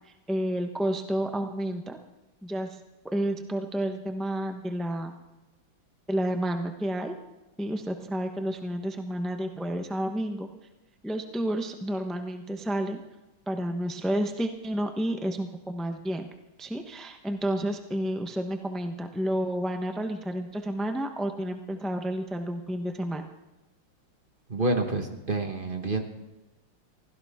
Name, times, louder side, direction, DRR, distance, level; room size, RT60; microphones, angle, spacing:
voice 1, 0.3-2.0 2.4-2.8 3.0-5.2 6.1-7.1 7.6-10.5 11.0-13.0 13.5-16.3 16.6-23.3, right 1 dB, ahead, 5 dB, 0.4 m, -30 dB
voice 2, 24.5-26.0, right 2 dB, 30° right, 5 dB, 1.4 m, -28 dB
24.0 x 16.0 x 3.7 m, 1.0 s
omnidirectional pair, 2.2 m